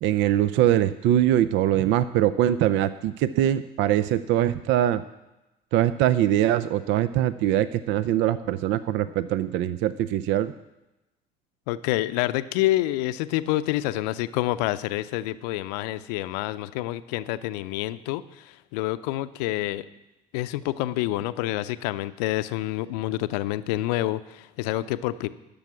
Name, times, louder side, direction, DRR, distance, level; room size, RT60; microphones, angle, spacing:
voice 1, 0.0-5.0 5.7-10.5, right 12 dB, 65° right, 15 dB, 0.5 m, -22 dB
voice 2, 11.7-19.9 20.3-25.3, left 16 dB, 80° left, 14 dB, 0.6 m, -28 dB
11.5 x 7.0 x 9.5 m, 1.0 s
hypercardioid pair, 60°, 21 cm